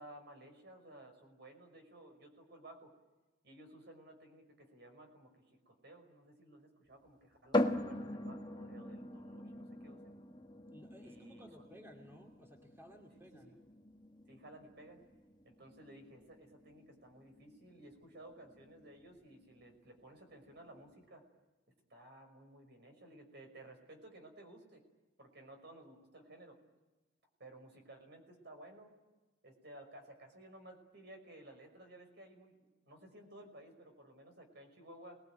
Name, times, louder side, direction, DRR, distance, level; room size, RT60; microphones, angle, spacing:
voice 1, 0.0-2.9 3.4-10.1 11.0-11.6 13.1-13.5 14.3-15.0 15.4-21.3 21.9-24.8 25.2-26.6 27.4-28.9 29.4-35.2, right 1 dB, 55° right, 5 dB, 5.7 m, -56 dB
sound 1, 7.5-21.0, left 1 dB, 20° left, 1.6 m, -42 dB
voice 2, 10.7-13.6, equal, 10° right, 1 dB, 2.5 m, -57 dB
28.0 x 21.0 x 9.2 m, 1.1 s
head